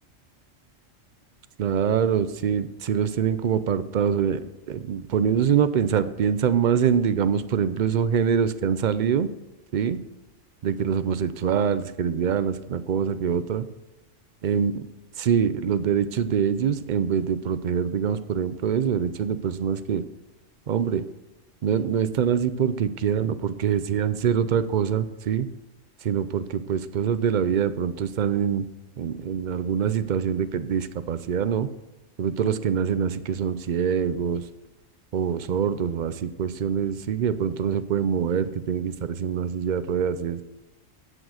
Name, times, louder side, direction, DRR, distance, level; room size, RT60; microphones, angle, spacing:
voice 1, 1.6-4.4 4.7-9.3 9.7-10.0 10.6-13.7 14.4-14.8 15.2-20.0 20.7-21.0 21.6-25.5 26.0-28.7 29.0-31.7 32.2-34.5 35.1-40.4, right 8 dB, 60° right, 13 dB, 0.5 m, -24 dB
9.8 x 7.1 x 6.4 m, 1.0 s
omnidirectional pair, 1.4 m